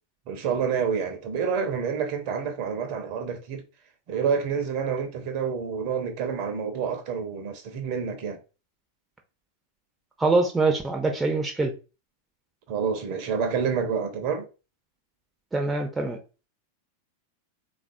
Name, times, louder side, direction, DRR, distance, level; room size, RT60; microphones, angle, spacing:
voice 1, 0.3-3.6 4.1-8.4 12.7-14.5, right 6 dB, 45° right, 0.7 m, -28 dB
voice 2, 10.2-11.7 15.5-16.2, right 3 dB, 10° right, 0.6 m, -24 dB
3.5 x 2.4 x 2.6 m
figure-of-eight pair, 90°, 0 cm